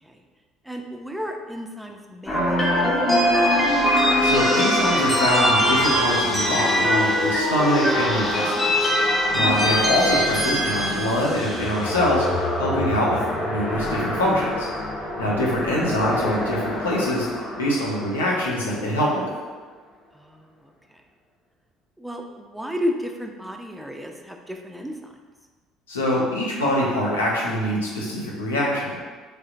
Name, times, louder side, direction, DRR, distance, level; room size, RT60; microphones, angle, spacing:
voice 1, 0.6-3.5 9.4-9.7 15.1-15.6 20.1-21.0 22.0-25.1, equal, 5° right, 3 dB, 0.4 m, -33 dB
sound 1, 2.3-18.5, left 1 dB, 25° left, 0.9 m, -23 dB
voice 2, 4.2-8.5 8.8-14.7 15.2-17.3 17.6-19.3 25.9-29.0, left 1 dB, 85° left, -4 dB, 0.6 m, -24 dB
3.2 x 2.7 x 2.4 m, 1.4 s
hypercardioid pair, 60°, 0 cm